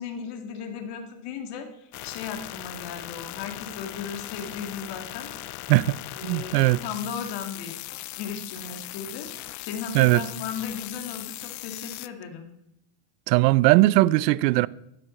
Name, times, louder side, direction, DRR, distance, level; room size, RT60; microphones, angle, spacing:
voice 1, 0.0-5.7 6.1-7.8 8.2-9.3 9.6-12.5, left 6 dB, 55° left, 2.2 m, -36 dB
sound 1, 1.9-12.1, left 17 dB, 40° left, 0.4 m, -39 dB
voice 2, 6.2-6.8 9.9-10.2 13.3-14.7, right 19 dB, 85° right, 0.6 m, -19 dB
12.5 x 10.0 x 4.3 m
supercardioid pair, 120°, 47 cm